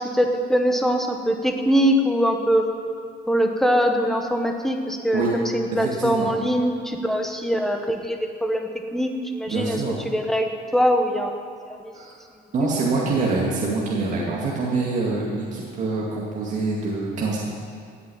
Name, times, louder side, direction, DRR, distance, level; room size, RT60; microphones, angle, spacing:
voice 1, 0.0-2.7 3.3-9.8 10.0-11.4 11.8-11.9 12.6-12.7, equal, ahead, 3 dB, 1.1 m, -22 dB
voice 2, 5.8-6.3 9.5-9.9 11.9-12.1 12.5-17.4, right 3 dB, 40° right, -5 dB, 2.1 m, -25 dB
15.0 x 8.6 x 8.6 m, 2.3 s
cardioid pair, 175°, 19 cm